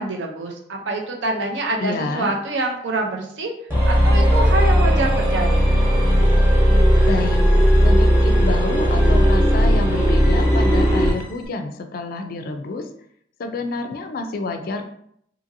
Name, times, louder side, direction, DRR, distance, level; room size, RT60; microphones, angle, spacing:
voice 1, 0.0-3.5 3.8-5.7, right 2 dB, 75° right, 1 dB, 0.6 m, -25 dB
voice 2, 1.8-2.3 7.0-7.4 7.8-12.9 13.4-14.9, left 3 dB, 50° left, 7 dB, 0.3 m, -28 dB
sound 1, 3.7-11.2, equal, 15° right, 0.9 m, -16 dB
2.7 x 2.6 x 2.6 m, 0.69 s
head